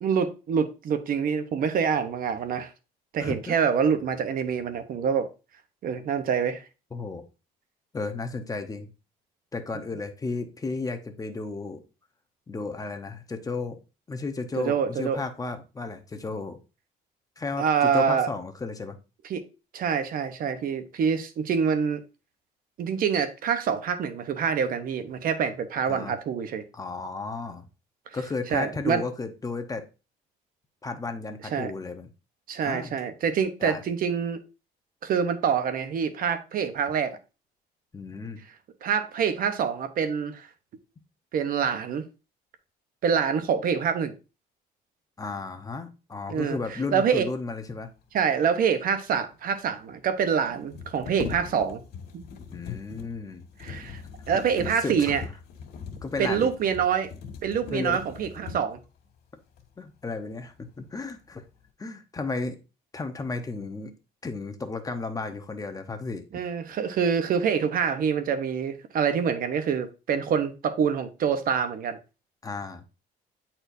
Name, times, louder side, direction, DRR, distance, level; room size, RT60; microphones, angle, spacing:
voice 1, 0.0-2.7 3.1-5.3 5.8-6.6 14.6-15.2 17.6-18.3 19.3-19.4 19.7-22.0 22.8-26.6 28.5-29.0 31.5-31.7 32.5-34.4 35.0-37.2 38.8-40.5 41.3-42.0 43.0-44.1 46.3-46.6 46.9-47.3 48.1-51.8 52.1-52.2 53.6-54.0 54.3-55.2 56.2-57.1 57.4-58.8 66.3-72.0, right 7 dB, 55° right, 0.9 m, -26 dB
voice 2, 3.2-3.6 6.9-7.2 7.9-8.9 9.5-11.8 12.5-13.8 14.1-16.6 17.4-19.0 25.9-26.1 26.7-27.7 28.1-29.9 30.8-32.1 32.6-33.0 33.6-33.8 37.9-38.4 45.2-47.9 52.5-53.5 54.3-54.4 54.8-55.2 56.0-56.5 57.7-58.0 59.8-61.4 61.8-62.6 62.9-63.9 64.2-66.3 72.4-72.8, left 3 dB, 20° left, 0.9 m, -33 dB
sound 1, 49.1-49.2 49.3-49.4 50.5-58.9 59.6-59.7 60.1-60.8 61.1-61.7, left 6 dB, 70° left, 1.7 m, -41 dB
9.7 x 4.4 x 2.6 m
cardioid pair, 110°, 17 cm